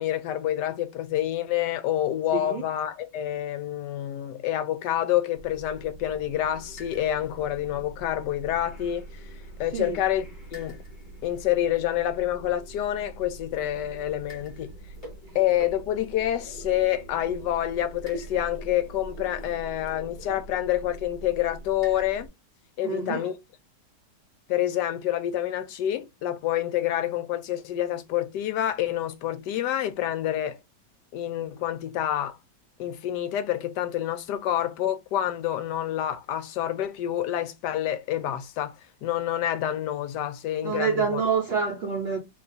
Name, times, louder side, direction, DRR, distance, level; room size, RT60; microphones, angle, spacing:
voice 1, 0.0-9.3 9.6-10.8 11.2-14.7 15.3-22.3 22.8-23.4 24.5-30.6 31.1-32.4 32.8-41.2, left 12 dB, 80° left, 1.1 m, -28 dB
voice 2, 2.3-2.6 9.7-10.0 22.8-23.3 40.6-42.2, right 6 dB, 55° right, 0.7 m, -27 dB
sound 1, 5.3-22.3, right 1 dB, 30° left, 1.3 m, -43 dB
3.0 x 2.3 x 3.8 m
omnidirectional pair, 1.9 m